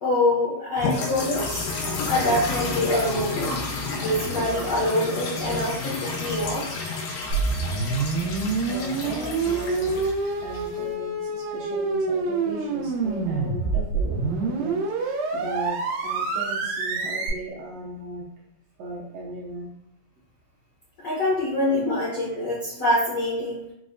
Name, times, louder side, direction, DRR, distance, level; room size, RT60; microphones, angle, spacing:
voice 1, 0.0-1.7 2.1-3.6 4.0-6.7 21.0-23.6, left 1 dB, 70° left, -9 dB, 1.0 m, -25 dB
sound 1, 0.8-10.9, left 3 dB, 90° left, 2.2 m, -31 dB
sound 2, 7.3-17.3, right 4 dB, 90° right, 2.1 m, -27 dB
voice 2, 8.7-10.1 10.4-18.3 18.8-19.7, right 1 dB, 75° right, -4 dB, 1.7 m, -37 dB
5.0 x 2.1 x 2.4 m, 0.79 s
omnidirectional pair, 3.3 m